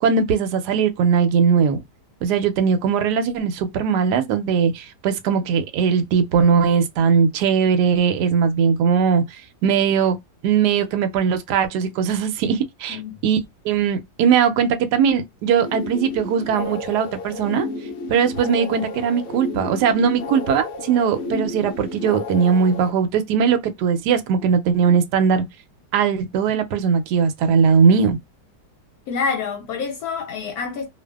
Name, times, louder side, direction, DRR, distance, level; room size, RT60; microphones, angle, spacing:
voice 1, 0.0-1.8 2.2-9.2 9.6-10.2 10.4-13.4 13.6-17.7 18.1-25.5 25.9-28.2, right 6 dB, 75° right, 1.1 m, -19 dB
voice 2, 12.9-13.2 29.1-30.9, left 5 dB, 70° left, 1.0 m, -27 dB
sound 1, 15.5-22.9, left 2 dB, 90° left, 0.6 m, -32 dB
2.5 x 2.3 x 2.3 m
omnidirectional pair, 1.8 m